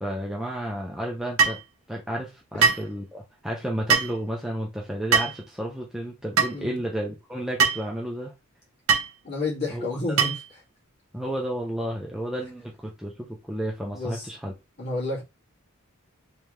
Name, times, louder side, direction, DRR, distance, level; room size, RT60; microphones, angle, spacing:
voice 1, 0.0-1.6 1.9-8.3 9.7-10.0 11.1-14.5, right 1 dB, ahead, 0.6 m, -32 dB
sound 1, 1.4-1.6 2.6-2.9 3.9-4.1 5.1-5.4 6.4-6.5 7.6-7.8 8.9-9.1 10.2-10.5, right 6 dB, 80° right, 0.7 m, -21 dB
voice 2, 6.5-6.8 9.2-10.4 13.9-14.3 14.8-15.2, left 2 dB, 50° left, 2.0 m, -30 dB
3.4 x 3.3 x 3.1 m
head